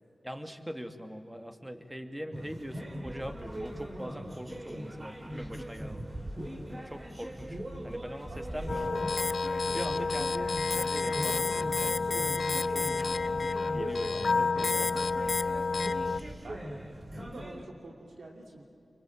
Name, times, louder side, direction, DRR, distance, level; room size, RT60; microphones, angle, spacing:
voice 1, 0.2-6.1 6.8-9.2 9.6-12.3 12.6-12.9 13.3-15.4, equal, 10° right, 6 dB, 2.4 m, -42 dB
sound 1, 2.3-17.6, equal, 35° right, 3.5 m, -40 dB
sound 2, 8.7-16.2, left 4 dB, 65° left, 0.5 m, -30 dB
voice 2, 16.4-18.6, right 2 dB, 80° right, 0 dB, 2.8 m, -47 dB
25.0 x 24.5 x 8.7 m, 2.8 s
cardioid pair, 45°, 0 cm